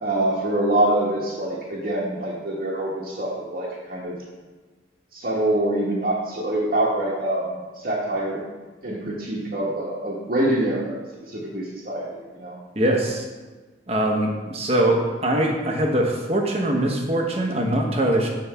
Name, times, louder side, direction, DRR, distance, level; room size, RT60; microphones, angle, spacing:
voice 1, 0.0-4.2 5.1-8.4 8.8-10.9 11.3-12.1 12.3-12.6, right 1 dB, 55° right, -6 dB, 1.3 m, -25 dB
voice 2, 12.7-13.2 13.9-18.3, right 1 dB, 35° right, 1 dB, 1.1 m, -22 dB
8.2 x 4.2 x 5.7 m, 1.3 s
head